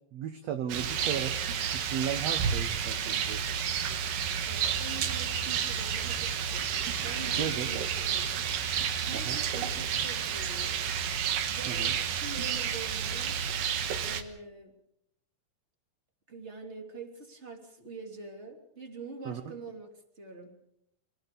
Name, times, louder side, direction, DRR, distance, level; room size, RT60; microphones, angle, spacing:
voice 1, 0.1-1.3 1.7-3.4 7.4-7.7 9.1-9.4 11.7-11.9 19.3-19.4, right 9 dB, 65° right, 8 dB, 1.8 m, -35 dB
Rain, 0.7-14.2, right 7 dB, 80° right, 3.1 m, -31 dB
voice 2, 4.4-6.7 7.0-10.8 11.5-13.4 13.9-14.7 16.3-20.5, right 3 dB, 20° right, 3 dB, 2.9 m, -45 dB
26.0 x 17.5 x 6.9 m, 0.78 s
omnidirectional pair, 4.0 m